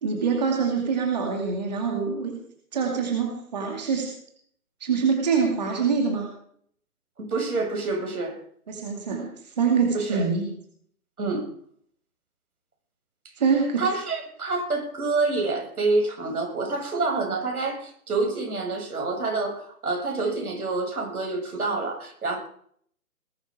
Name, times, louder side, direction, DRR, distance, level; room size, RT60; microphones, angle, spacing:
voice 1, 0.0-2.3 2.7-4.1 4.8-6.3 8.7-10.5 13.4-13.9, right 5 dB, 30° right, 1 dB, 2.5 m, -25 dB
voice 2, 7.2-8.4 9.9-10.3 11.2-11.5 13.8-22.4, right 3 dB, 80° right, 1 dB, 7.4 m, -27 dB
20.5 x 12.0 x 5.0 m, 0.63 s
hypercardioid pair, 180°, 44 cm